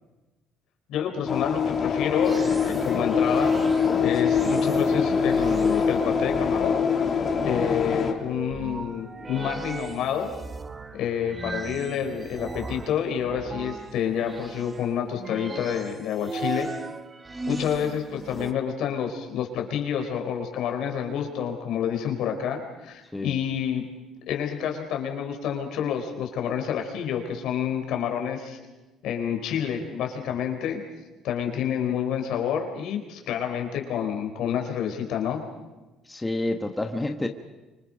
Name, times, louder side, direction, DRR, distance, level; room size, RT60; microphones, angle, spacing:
voice 1, 0.9-3.6 4.0-6.8 7.4-10.3 10.9-16.7 17.5-23.9 24.3-28.6 29.0-30.8 31.2-35.4, left 8 dB, 75° left, 4 dB, 4.1 m, -28 dB
sound 1, 1.3-8.1, left 5 dB, 35° left, 3.2 m, -23 dB
sound 2, 2.2-18.5, right 3 dB, 20° right, 1.2 m, -38 dB
voice 2, 36.1-37.3, left 2 dB, 10° left, 5 dB, 1.4 m, -28 dB
29.5 x 25.5 x 5.2 m, 1.1 s
cardioid pair, 110°, 0 cm